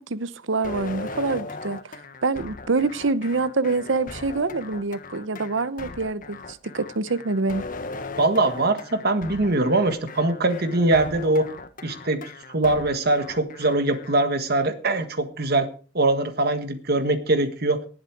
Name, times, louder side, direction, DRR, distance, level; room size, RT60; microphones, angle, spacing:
voice 1, 0.0-7.6, right 3 dB, 85° right, 0.9 m, -26 dB
sound 1, 0.6-14.3, left 3 dB, 45° left, 1.4 m, -38 dB
voice 2, 8.2-11.5 11.8-12.2 12.5-15.7 15.9-17.8, right 2 dB, 55° right, 1.5 m, -22 dB
18.0 x 8.2 x 4.7 m
head